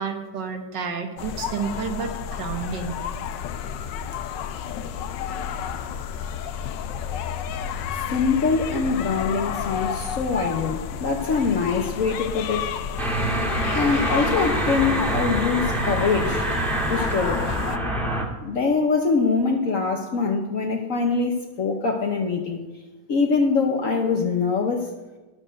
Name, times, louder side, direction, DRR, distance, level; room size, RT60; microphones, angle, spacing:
voice 1, 0.0-3.0, right 5 dB, 70° right, 5 dB, 1.8 m, -30 dB
sound 1, 1.2-17.8, left 8 dB, 80° left, 1.3 m, -31 dB
voice 2, 8.1-12.7 13.7-16.5 16.9-17.4 18.4-22.6 23.1-24.9, left 4 dB, 55° left, 2 dB, 1.2 m, -23 dB
sound 2, 13.0-18.2, right 1 dB, ahead, 1.9 m, -25 dB
11.5 x 7.7 x 6.5 m, 1.2 s
omnidirectional pair, 2.0 m